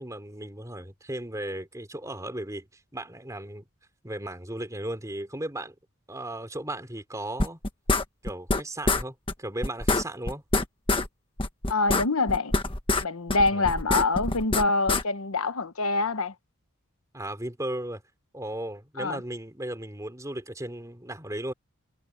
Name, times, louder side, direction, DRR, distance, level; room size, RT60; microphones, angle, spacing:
voice 1, 0.0-3.7 4.0-5.7 6.1-7.6 8.2-10.4 13.5-13.7 17.1-18.0 18.3-21.5, right 1 dB, 15° right, 3.3 m, -36 dB
sound 1, 7.4-8.6 8.9-9.0 9.3-9.4 9.6-11.1 11.4-13.0 13.3-15.0, left 2 dB, 25° left, 1.5 m, -25 dB
voice 2, 11.7-12.5 13.0-16.3 19.0-19.2, left 3 dB, 75° left, 1.1 m, -25 dB
head